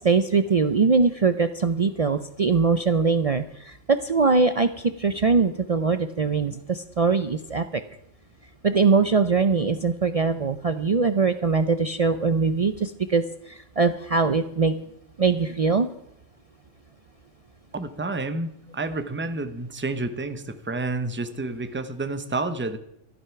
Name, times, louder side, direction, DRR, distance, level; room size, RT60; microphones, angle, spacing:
voice 1, 0.0-7.8 8.6-14.8 15.2-15.9, right 4 dB, 70° right, 10 dB, 0.3 m, -22 dB
voice 2, 17.7-22.8, right 3 dB, 10° right, 10 dB, 0.6 m, -30 dB
12.5 x 11.5 x 5.8 m, 0.77 s
omnidirectional pair, 1.4 m